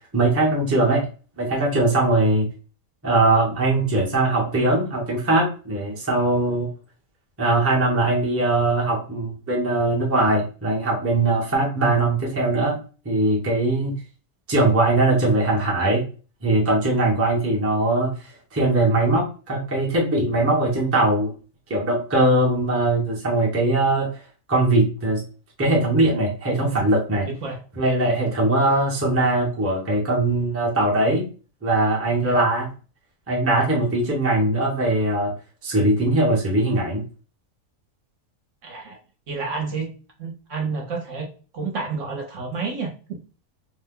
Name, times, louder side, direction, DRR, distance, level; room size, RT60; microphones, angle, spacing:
voice 1, 0.1-1.0 1.4-2.5 3.0-6.7 7.4-12.8 13.0-13.9 14.5-16.0 16.4-21.3 21.7-24.1 24.5-25.2 25.6-27.3 27.8-31.3 31.6-32.7 33.3-35.3 35.6-37.0, right 2 dB, 15° right, -2 dB, 0.6 m, -21 dB
voice 2, 27.2-27.6 32.2-32.5 38.6-39.0 39.3-39.9 40.2-42.9, right 4 dB, 60° right, 1 dB, 1.0 m, -30 dB
2.7 x 2.2 x 3.6 m, 0.36 s
omnidirectional pair, 1.6 m